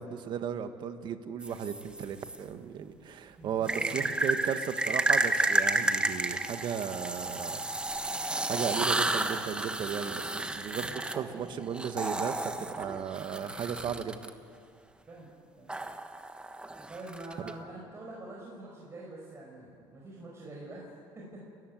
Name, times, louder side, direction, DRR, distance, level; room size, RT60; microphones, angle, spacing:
voice 1, 0.0-8.1 8.5-14.2, right 8 dB, 50° right, 9 dB, 1.7 m, -36 dB
sound 1, 1.4-2.4 3.7-14.3 15.7-17.5, right 2 dB, 10° right, 1.3 m, -31 dB
voice 2, 3.4-4.1 10.7-11.2 15.1-15.3 15.6-15.7 16.9-20.9 21.1-21.4, right 2 dB, 25° right, -3 dB, 5.3 m, -45 dB
29.5 x 14.0 x 9.5 m, 2.3 s
cardioid pair, 115°, 10 cm